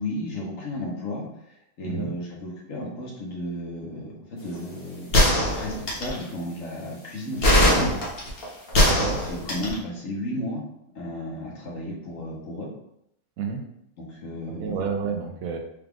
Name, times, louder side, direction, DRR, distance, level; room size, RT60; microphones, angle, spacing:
voice 1, 0.0-5.2 5.5-7.9 9.2-10.6 10.9-12.7 14.0-14.7, left 1 dB, 65° left, -3 dB, 1.4 m, -33 dB
sound 1, 5.1-6.2 7.4-9.7, left 1 dB, 45° left, 1.2 m, -20 dB
voice 2, 8.7-9.2 13.4-13.6 14.6-15.6, right 5 dB, 75° right, 3 dB, 1.0 m, -30 dB
4.6 x 2.4 x 3.5 m, 0.77 s
omnidirectional pair, 1.5 m